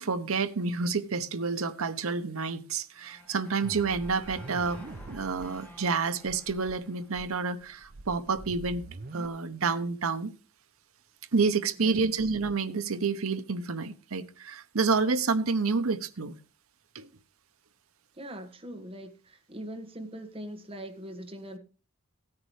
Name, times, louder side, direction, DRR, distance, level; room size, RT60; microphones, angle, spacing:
voice 1, 0.0-4.8 5.1-8.8 9.1-10.3 11.3-16.3 16.9-17.1, right 4 dB, 75° right, 0.9 m, -29 dB
sound 1, 3.0-8.0, equal, 5° left, 2.8 m, -51 dB
sound 2, 3.6-5.5 5.8-5.9 6.2-6.7 7.1-9.3, right 2 dB, 45° right, 0.7 m, -44 dB
voice 2, 18.2-21.6, right 1 dB, 25° right, 1.5 m, -41 dB
16.5 x 9.6 x 3.2 m
head